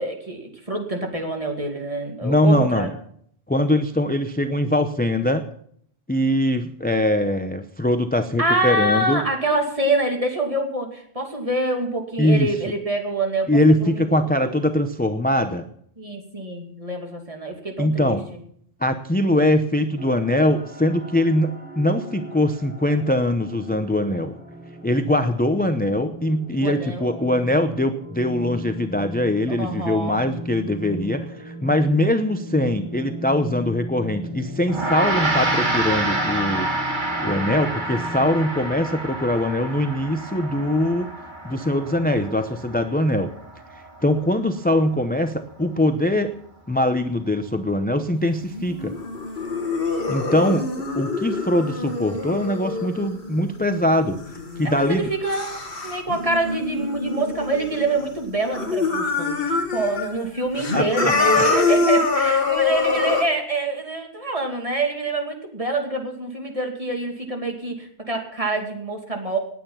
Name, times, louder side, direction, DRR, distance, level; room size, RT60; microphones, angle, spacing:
voice 1, 0.0-2.9 8.4-14.1 14.4-14.5 16.0-18.2 26.5-27.3 29.5-30.2 50.3-50.6 54.6-69.4, right 2 dB, 35° right, 2 dB, 2.7 m, -26 dB
voice 2, 2.2-2.9 3.5-5.5 6.1-9.2 12.2-12.6 13.5-15.6 17.8-18.2 18.8-24.4 24.8-36.7 37.2-41.1 41.4-43.3 44.0-46.3 46.7-49.0 50.1-54.2 54.6-55.1 60.7-61.4, left 1 dB, 10° left, 8 dB, 0.7 m, -22 dB
sound 1, 20.0-38.7, equal, 10° right, 1.4 m, -37 dB
Gong, 34.7-44.3, right 2 dB, 50° right, 2.2 m, -28 dB
sound 2, 48.5-58.2 58.4-60.1 60.4-63.2, left 4 dB, 65° left, 1.9 m, -25 dB
19.0 x 9.1 x 5.7 m, 0.65 s
omnidirectional pair, 1.0 m